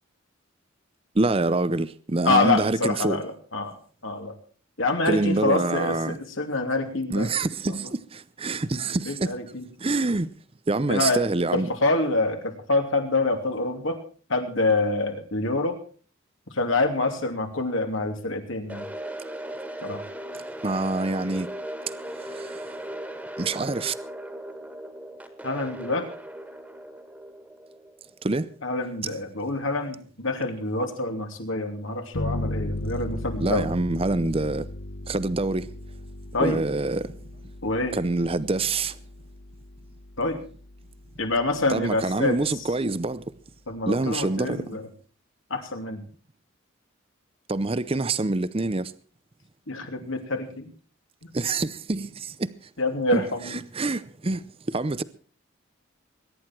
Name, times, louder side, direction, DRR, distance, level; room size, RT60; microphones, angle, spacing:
voice 1, 1.1-3.2 5.1-6.2 7.1-9.4 9.8-10.3 10.7-11.7 20.6-21.5 22.3-22.6 23.4-24.0 28.2-28.5 33.4-34.7 35.1-35.7 36.4-37.1 37.9-39.0 41.7-43.2 43.9-44.8 47.5-48.9 51.3-52.5 53.1-55.0, right 2 dB, 25° right, 0.6 m, -26 dB
voice 2, 2.2-3.8 4.0-4.4 4.8-7.3 7.6-7.7 9.1-9.6 10.9-11.2 11.5-14.0 14.3-15.8 16.5-18.8 19.8-20.0 25.4-26.1 28.6-33.7 36.3-36.6 37.6-37.9 40.2-40.4 41.2-42.4 43.7-44.9 45.5-46.0 49.7-50.7 52.8-53.6, left 2 dB, 70° left, 3.0 m, -26 dB
sound 1, 18.7-28.7, right 1 dB, 5° right, 1.9 m, -38 dB
sound 2, 32.1-41.4, left 1 dB, 85° left, 1.1 m, -36 dB
22.0 x 11.0 x 4.5 m
head